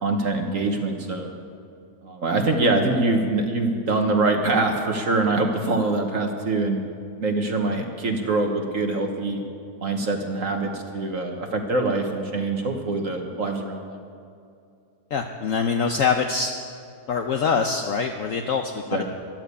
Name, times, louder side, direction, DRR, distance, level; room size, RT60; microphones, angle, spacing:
voice 1, 0.0-1.3 2.0-6.8 7.2-9.4 9.8-14.0 18.9-19.0, right 2 dB, 55° right, 3 dB, 1.6 m, -24 dB
voice 2, 15.1-16.5 17.1-19.0, left 5 dB, 60° left, 4 dB, 1.0 m, -24 dB
13.5 x 11.5 x 8.4 m, 2.4 s
omnidirectional pair, 1.8 m